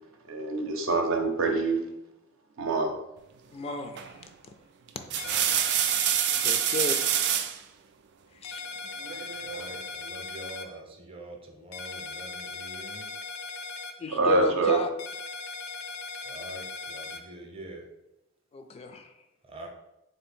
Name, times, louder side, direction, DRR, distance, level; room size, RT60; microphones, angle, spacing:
voice 1, 0.3-1.8 2.6-2.9 14.1-14.8, right 3 dB, 75° right, 3 dB, 0.7 m, -25 dB
voice 2, 3.5-4.2 4.5-4.6 6.4-7.0 8.4-8.6 14.0-14.9 18.5-19.1, left 3 dB, 30° left, 7 dB, 0.3 m, -33 dB
sound 1, 4.0-4.3 4.9-7.6 9.1-9.7, right 10 dB, 55° right, 0.3 m, -27 dB
voice 3, 5.0-5.6 9.4-13.1 16.2-17.9 19.4-19.7, right 1 dB, 30° right, 2 dB, 0.7 m, -45 dB
sound 2, 5.2-7.4 8.4-10.6 11.7-13.9 15.0-17.2, left 4 dB, 85° left, 0.5 m, -39 dB
3.5 x 2.6 x 4.3 m, 0.88 s
head